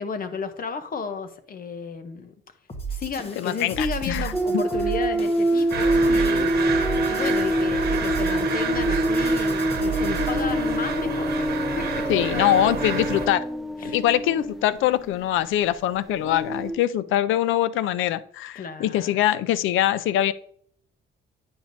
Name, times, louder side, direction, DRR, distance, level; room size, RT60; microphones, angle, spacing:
voice 1, 0.0-2.3 2.9-11.5 11.8-13.0 13.8-14.0 18.6-19.2, left 5 dB, 45° left, 10 dB, 0.7 m, -33 dB
sound 1, 2.7-10.6, right 5 dB, 30° left, 1.1 m, -34 dB
voice 2, 3.4-4.3 12.1-13.4 13.8-20.3, left 12 dB, 80° left, 16 dB, 0.4 m, -23 dB
sound 2, 4.3-14.6 16.1-16.7, right 1 dB, ahead, 0.6 m, -25 dB
sound 3, 5.7-13.3, right 6 dB, 55° right, 1.2 m, -30 dB
8.7 x 5.0 x 2.6 m, 0.62 s
cardioid pair, 90°, 20 cm